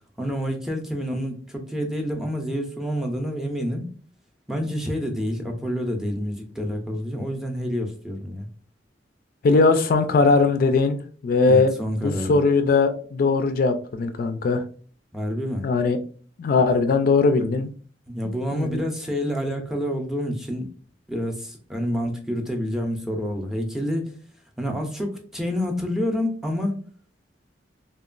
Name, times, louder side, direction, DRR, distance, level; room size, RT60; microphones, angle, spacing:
voice 1, 0.2-3.9 4.5-8.5 11.4-12.4 15.1-15.7 18.1-20.7 21.1-24.1 24.6-26.8, equal, 5° right, 3 dB, 0.5 m, -28 dB
voice 2, 9.4-11.0 11.2-11.7 12.0-14.6 15.6-16.0 16.4-17.7 18.5-18.7, left 4 dB, 55° left, 8 dB, 0.3 m, -19 dB
2.9 x 2.2 x 2.4 m, 0.43 s
head